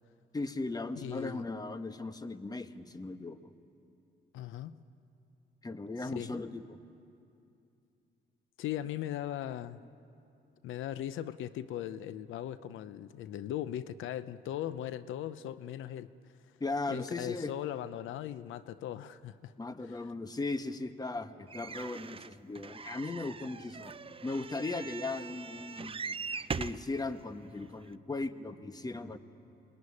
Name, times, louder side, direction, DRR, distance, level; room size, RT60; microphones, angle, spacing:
voice 1, 0.3-3.5 5.6-6.8 16.6-17.5 19.6-23.9 24.2-26.1 26.6-29.2, left 3 dB, 20° left, 10 dB, 1.2 m, -37 dB
voice 2, 1.0-1.4 4.3-4.8 6.0-6.4 8.6-9.8 10.6-16.1 16.9-19.5 19.8-20.0, left 11 dB, 80° left, 14 dB, 0.7 m, -39 dB
sound 1, 21.5-26.9 27.6-27.7 27.9-28.0, right 5 dB, 30° right, 0.6 m, -41 dB
27.0 x 20.5 x 9.8 m, 2.7 s
cardioid pair, 90°, 20 cm